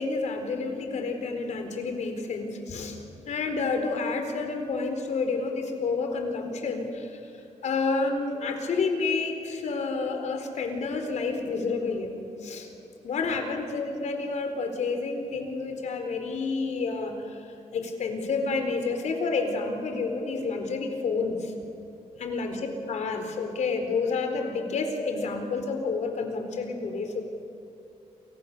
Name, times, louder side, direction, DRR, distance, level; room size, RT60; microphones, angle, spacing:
voice 1, 0.0-3.0 3.2-7.2 7.6-12.7 13.0-17.4 17.7-21.5 22.2-27.2, left 4 dB, 80° left, 5 dB, 4.2 m, -29 dB
28.5 x 28.5 x 6.8 m, 2.7 s
wide cardioid pair, 155°, 12 cm